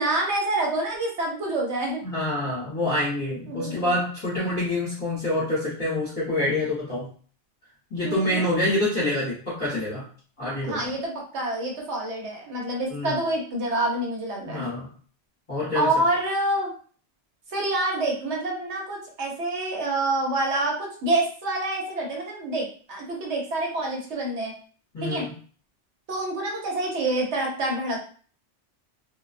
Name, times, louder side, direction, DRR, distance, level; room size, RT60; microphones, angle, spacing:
voice 1, 0.0-2.0 3.5-3.9 4.4-4.6 8.0-8.5 10.6-14.6 15.7-16.7 17.5-24.5 25.0-25.3 26.1-28.0, right 2 dB, 75° right, -1 dB, 1.0 m, -27 dB
voice 2, 2.0-7.1 7.9-10.0 10.4-10.9 12.9-13.1 14.4-14.9 15.5-15.9 24.9-25.3, left 1 dB, 30° left, -10 dB, 1.0 m, -26 dB
2.3 x 2.2 x 2.4 m, 0.43 s
omnidirectional pair, 1.2 m